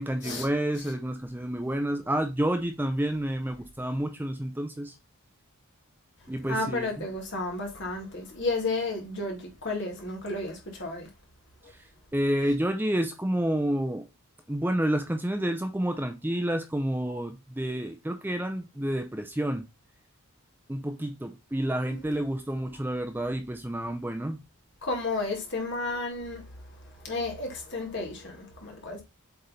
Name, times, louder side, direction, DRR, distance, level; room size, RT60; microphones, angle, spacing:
voice 1, 0.0-4.9 6.3-7.1 12.1-14.1 14.5-19.7 20.7-24.4, right 1 dB, 10° right, 0.5 m, -29 dB
voice 2, 6.5-11.1 11.6-11.7 21.9-22.0 24.8-29.0, left 2 dB, 55° left, 2.1 m, -32 dB
7.8 x 3.3 x 4.1 m
head